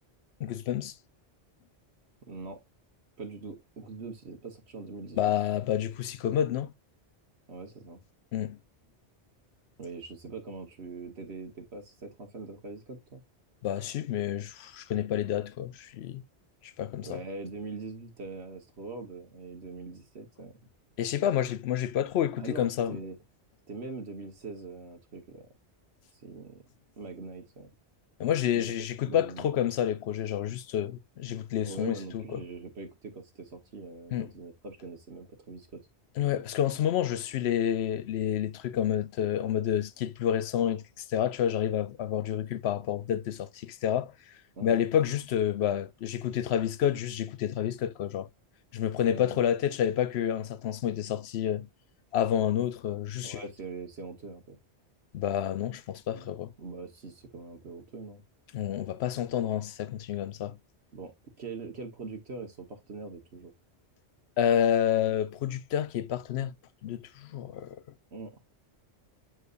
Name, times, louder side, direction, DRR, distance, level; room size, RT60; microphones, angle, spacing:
voice 1, 0.4-0.9 5.2-6.7 8.3-8.6 13.6-16.2 16.6-17.2 21.0-23.0 28.2-32.4 34.1-34.3 36.2-40.8 41.1-44.1 44.6-48.3 48.7-51.7 52.1-53.4 55.1-56.5 58.5-60.6 64.4-66.5 66.8-67.8, left 10 dB, 75° left, 0.8 m, -29 dB
voice 2, 2.3-2.6 3.2-5.3 7.5-8.0 9.8-13.2 17.0-20.5 22.4-23.2 23.7-25.4 26.1-26.6 27.0-27.7 28.6-29.7 31.6-35.8 44.6-44.8 49.0-49.4 53.2-54.6 56.1-56.3 56.6-58.2 60.9-61.1 61.4-63.5 68.1-68.3, right 3 dB, 70° right, 1.7 m, -42 dB
8.0 x 4.6 x 2.5 m
omnidirectional pair, 1.1 m